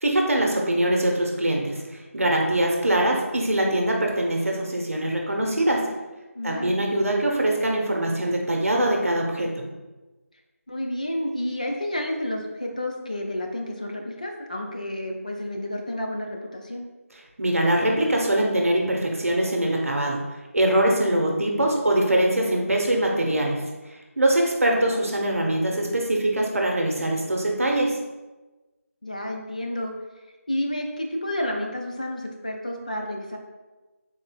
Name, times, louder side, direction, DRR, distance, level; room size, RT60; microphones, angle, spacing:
voice 1, 0.0-5.9 6.4-9.6 17.4-20.2 20.5-23.6 24.2-28.0, right 1 dB, 65° right, 0 dB, 0.8 m, -23 dB
voice 2, 6.4-6.8 10.7-16.8 24.7-25.1 29.0-29.9 30.5-33.4, left 1 dB, 30° left, 1 dB, 0.3 m, -30 dB
3.9 x 3.7 x 2.3 m, 1.2 s
figure-of-eight pair, 170°, 8 cm